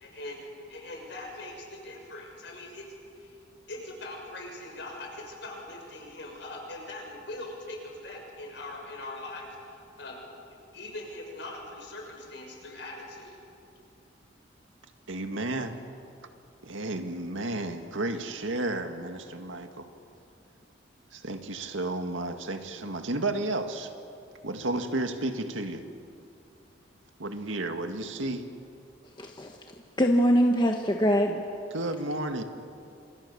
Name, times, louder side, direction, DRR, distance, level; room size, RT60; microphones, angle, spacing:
voice 1, 0.0-2.9 3.1-3.3 3.7-10.4 10.7-13.4, left 2 dB, 60° left, 1 dB, 6.5 m, -41 dB
voice 2, 15.1-15.8 16.6-19.9 21.1-23.9 24.4-25.8 27.2-28.5 31.7-32.4, right 2 dB, 80° right, 6 dB, 2.1 m, -32 dB
voice 3, 29.2-29.6 30.0-31.4, equal, 20° left, 2 dB, 1.3 m, -23 dB
29.5 x 27.0 x 7.1 m, 2.6 s
head